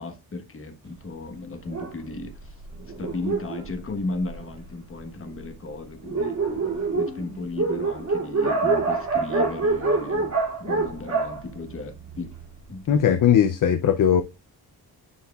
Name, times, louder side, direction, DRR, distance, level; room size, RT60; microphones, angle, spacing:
voice 1, 0.0-2.6 3.0-6.4 7.0-12.3 12.7-13.2, left 3 dB, 35° left, 1.3 m, -35 dB
Dog, 1.7-4.7 5.4-5.5 5.7-5.8 6.0-12.4, right 3 dB, 45° right, 2.6 m, -26 dB
voice 2, 12.9-14.2, left 9 dB, 50° left, 0.6 m, -19 dB
10.0 x 4.6 x 2.4 m
wide cardioid pair, 150°, 39 cm